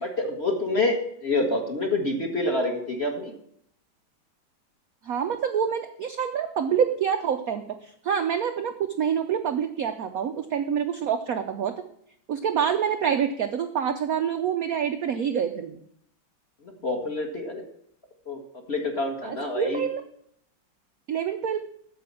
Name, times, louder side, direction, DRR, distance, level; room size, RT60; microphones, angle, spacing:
voice 1, 0.0-3.3 16.6-17.6 18.3-18.4 18.7-19.8, left 2 dB, 35° left, 3 dB, 1.5 m, -27 dB
voice 2, 5.0-11.7 12.3-15.8 19.2-20.0 21.1-21.7, right 8 dB, 70° right, 6 dB, 0.8 m, -27 dB
8.5 x 6.9 x 7.2 m, 0.70 s
omnidirectional pair, 2.4 m